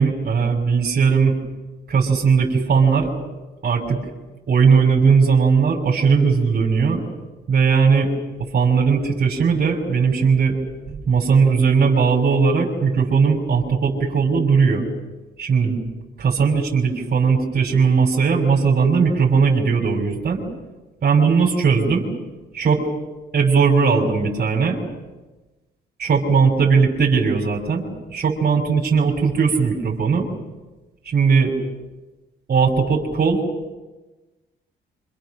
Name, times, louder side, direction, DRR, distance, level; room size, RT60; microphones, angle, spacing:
voice 1, 0.0-1.3 1.9-3.1 3.6-4.0 4.5-7.0 7.5-8.1 8.5-10.5 10.9-14.8 15.4-15.8 16.2-20.4 21.0-22.1 22.5-22.8 23.3-24.8 26.0-30.3 31.0-31.5 32.5-33.4, right 5 dB, 50° right, -2 dB, 6.1 m, -18 dB
27.5 x 26.5 x 6.5 m, 1.1 s
cardioid pair, 90°, 20 cm